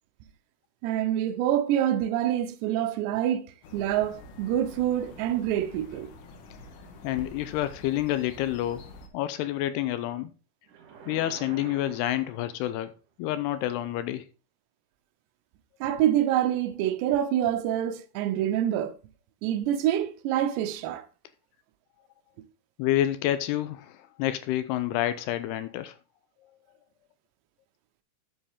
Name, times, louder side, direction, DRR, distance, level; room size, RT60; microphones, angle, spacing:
voice 1, 0.8-3.5 3.7-6.1 15.8-19.0 19.4-21.1, right 11 dB, 85° right, 3.0 m, -26 dB
sound 1, 3.6-9.1, left 2 dB, 65° left, 2.4 m, -47 dB
voice 2, 7.0-8.9 9.1-10.3 11.1-12.9 13.2-14.2 22.8-23.9 24.2-25.9, left 13 dB, 80° left, 2.5 m, -28 dB
sound 2, 10.7-13.0, right 6 dB, 60° right, 2.5 m, -47 dB
10.0 x 7.5 x 3.6 m
omnidirectional pair, 4.9 m